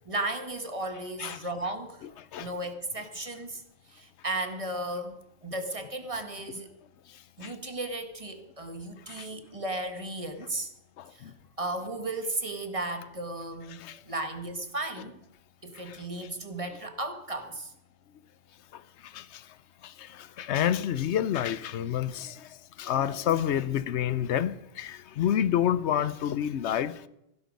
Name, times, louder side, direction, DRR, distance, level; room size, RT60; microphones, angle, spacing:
voice 1, 0.1-2.1 2.4-6.7 7.4-10.7 11.1-15.1 15.6-17.7, right 2 dB, 30° right, 1.6 m, -35 dB
voice 2, 11.0-11.3 13.7-14.0 15.9-16.0 18.7-19.4 19.8-27.0, left 10 dB, 90° left, 1.0 m, -29 dB
16.0 x 11.0 x 5.3 m
omnidirectional pair, 1.1 m